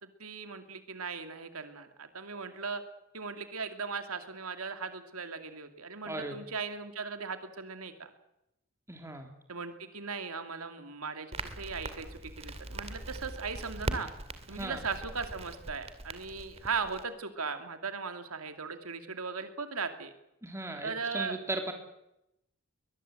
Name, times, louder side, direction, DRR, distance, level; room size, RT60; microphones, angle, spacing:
voice 1, 0.0-2.8 3.1-8.1 9.5-14.1 14.5-20.1 20.8-21.4, right 5 dB, 90° right, 8 dB, 2.7 m, -38 dB
voice 2, 8.9-9.3 14.5-14.8 20.4-21.7, right 2 dB, 15° right, 4 dB, 3.4 m, -37 dB
Crackle, 11.3-17.0, right 2 dB, 30° right, 2.3 m, -41 dB
23.0 x 21.0 x 8.0 m, 0.85 s
head